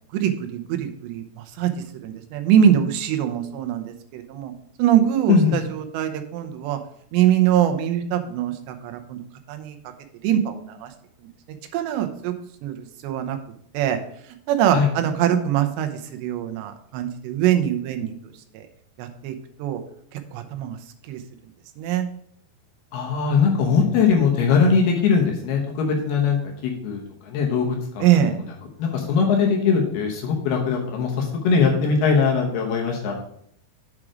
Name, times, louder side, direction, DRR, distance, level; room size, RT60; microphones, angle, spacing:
voice 1, 0.1-1.7 2.0-4.5 4.8-6.8 7.1-9.2 9.5-9.8 10.2-10.9 11.7-12.3 12.6-13.4 13.7-14.0 14.5-18.1 18.5-18.6 19.0-19.8 20.1-20.8 21.1-21.2 21.8-22.1 28.0-28.3, right 10 dB, 85° right, 6 dB, 3.0 m, -23 dB
voice 2, 22.9-28.1 28.8-33.1, left 5 dB, 75° left, 0 dB, 2.9 m, -21 dB
7.5 x 4.8 x 4.9 m, 0.67 s
omnidirectional pair, 4.9 m